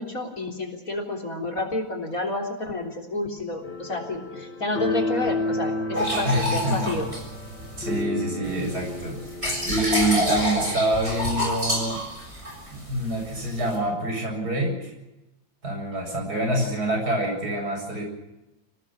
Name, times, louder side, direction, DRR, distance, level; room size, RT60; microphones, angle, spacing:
voice 1, 0.0-7.0, left 2 dB, 45° left, 5 dB, 4.0 m, -30 dB
sound 1, 3.6-10.8, left 2 dB, 60° left, 4.0 m, -32 dB
sound 2, 5.9-8.0 8.4-13.8, equal, 30° right, 7.4 m, -28 dB
voice 2, 6.2-6.9 7.8-9.3 9.6-12.0 12.7-14.9 15.6-18.0, right 1 dB, 50° right, 1 dB, 8.4 m, -26 dB
29.5 x 18.0 x 6.2 m, 0.95 s
omnidirectional pair, 2.1 m